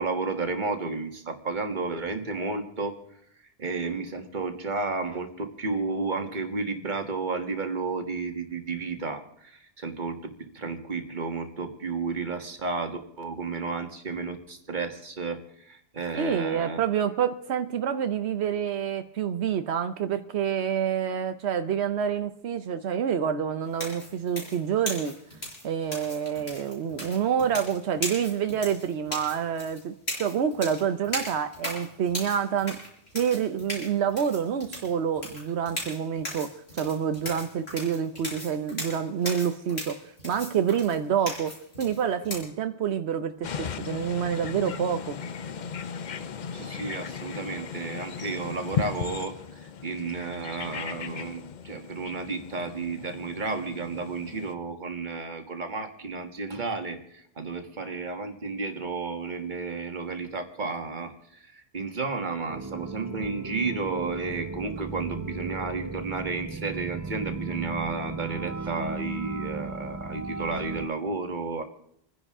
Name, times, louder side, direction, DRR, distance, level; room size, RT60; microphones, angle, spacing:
voice 1, 0.0-3.0 3.6-16.8 46.5-71.6, right 4 dB, 45° right, 5 dB, 1.7 m, -32 dB
voice 2, 16.1-25.2 25.6-32.8 33.1-41.5 41.8-45.2, right 8 dB, 90° right, 9 dB, 1.1 m, -27 dB
sound 1, 23.7-42.4, left 1 dB, 75° left, 5.6 m, -37 dB
sound 2, 43.4-54.5, left 7 dB, 50° left, 0.7 m, -36 dB
sound 3, 62.5-70.9, right 3 dB, 30° right, 0.3 m, -36 dB
28.0 x 10.5 x 3.6 m, 0.72 s
omnidirectional pair, 1.1 m